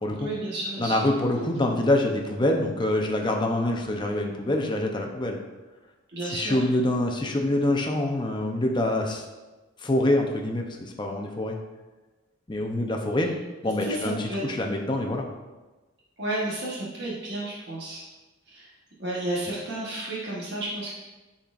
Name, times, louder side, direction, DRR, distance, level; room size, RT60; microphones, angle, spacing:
voice 1, 0.2-1.1 6.1-6.7 13.8-14.4 16.2-18.0 18.5-18.7 19.0-20.9, right 1 dB, 55° right, -6 dB, 1.3 m, -32 dB
voice 2, 0.8-5.4 6.3-9.2 9.8-11.6 12.5-13.3 13.6-15.3, left 1 dB, 25° left, 2 dB, 0.7 m, -25 dB
10.0 x 4.3 x 2.5 m, 1.2 s
head